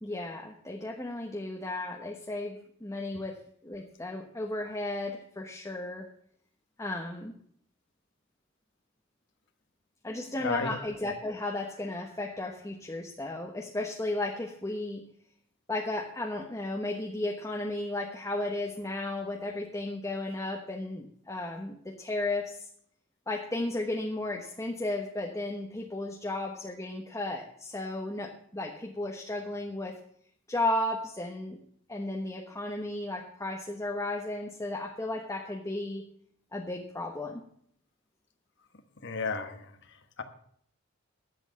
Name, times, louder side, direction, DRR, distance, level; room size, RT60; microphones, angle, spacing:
voice 1, 0.0-6.1 6.8-7.3 10.0-15.0 15.7-22.7 23.3-30.0 30.5-31.6 31.9-36.0 36.5-37.4, left 2 dB, 15° left, 1 dB, 1.2 m, -34 dB
voice 2, 10.4-10.8 39.0-39.7, left 3 dB, 60° left, 8 dB, 1.4 m, -32 dB
11.0 x 8.1 x 7.7 m, 0.64 s
head